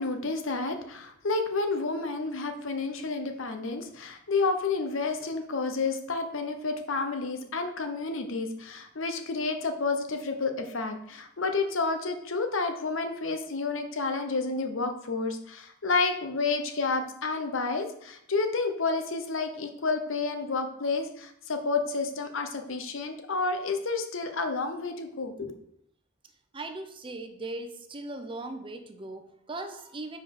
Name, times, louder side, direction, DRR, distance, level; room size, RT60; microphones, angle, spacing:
voice 1, 0.0-25.5, left 3 dB, 60° left, 6 dB, 0.8 m, -30 dB
voice 2, 26.5-30.2, right 2 dB, 25° right, 6 dB, 0.6 m, -39 dB
5.0 x 5.0 x 4.8 m, 0.72 s
head